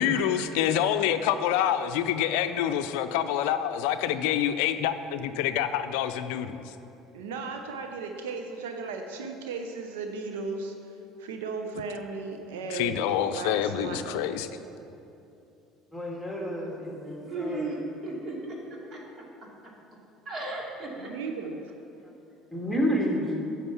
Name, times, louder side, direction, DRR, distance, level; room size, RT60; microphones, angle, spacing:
voice 1, 0.0-6.6 12.7-14.5, left 10 dB, 75° left, 10 dB, 0.5 m, -27 dB
voice 2, 7.1-14.3 21.0-21.7, right 4 dB, 80° right, 4 dB, 0.7 m, -36 dB
voice 3, 15.9-17.8 22.5-23.3, equal, 5° right, -2 dB, 2.7 m, -30 dB
voice 4, 17.3-18.6 18.9-19.0 20.3-21.1, right 2 dB, 45° right, -2 dB, 2.6 m, -35 dB
9.5 x 5.9 x 7.1 m, 2.7 s
hypercardioid pair, 70°, 0 cm